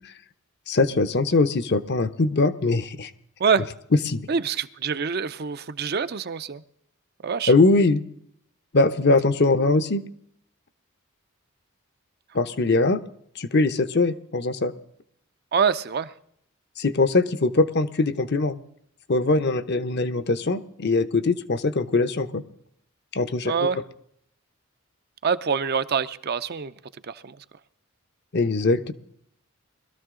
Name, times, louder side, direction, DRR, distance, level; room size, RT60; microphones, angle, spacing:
voice 1, 0.7-3.1 4.1-4.3 7.5-8.0 8.7-10.0 12.3-13.0 13.4-14.7 16.8-18.6 19.1-22.4 23.1-23.5 28.3-28.9, left 3 dB, 50° left, 0.7 m, -21 dB
voice 2, 4.3-6.6 7.2-7.5 15.5-16.1 23.4-23.8 25.2-26.7 27.0-27.4, right 6 dB, 45° right, 0.5 m, -25 dB
21.0 x 13.0 x 3.7 m
head